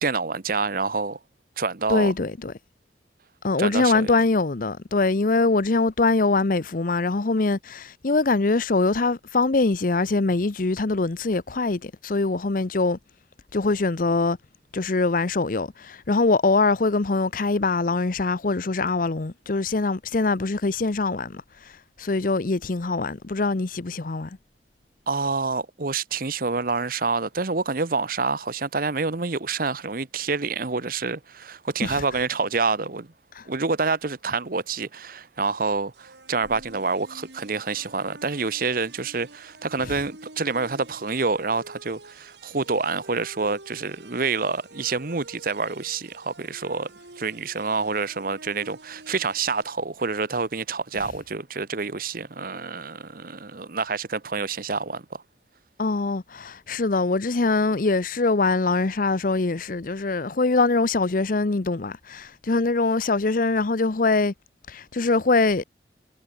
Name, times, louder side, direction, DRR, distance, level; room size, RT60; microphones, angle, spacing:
voice 1, 0.0-1.2 1.6-2.1 3.6-4.1 25.1-33.1 33.5-46.9 47.2-55.2, right 4 dB, 50° right, 1.0 m, -27 dB
voice 2, 1.9-2.5 3.4-13.0 13.5-14.4 14.7-21.4 22.0-24.3 31.8-32.0 33.4-33.5 39.9-40.0 55.8-64.3 64.7-65.6, left 3 dB, 50° left, 0.7 m, -23 dB
sound 1, 35.9-49.6, right 2 dB, 75° right, 5.3 m, -48 dB
head